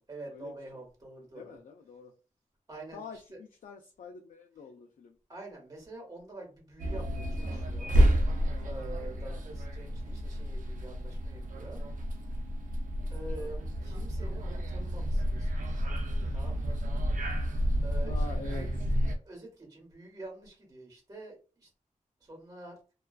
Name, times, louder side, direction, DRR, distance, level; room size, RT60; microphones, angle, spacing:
voice 1, 0.1-1.6 2.7-3.4 5.3-7.9 8.6-11.8 13.1-15.8 16.3-16.8 17.8-18.7 19.2-21.7 22.2-22.8, right 2 dB, 30° right, 0 dB, 1.2 m, -46 dB
voice 2, 1.3-2.1 2.9-5.2 7.4-7.7 9.3-9.4 13.4-13.5 18.1-18.9, left 5 dB, 75° left, 2 dB, 0.4 m, -46 dB
sound 1, 6.8-19.1, equal, 75° right, 0.4 m, -30 dB
2.3 x 2.3 x 2.3 m, 0.35 s
wide cardioid pair, 130°, 14 cm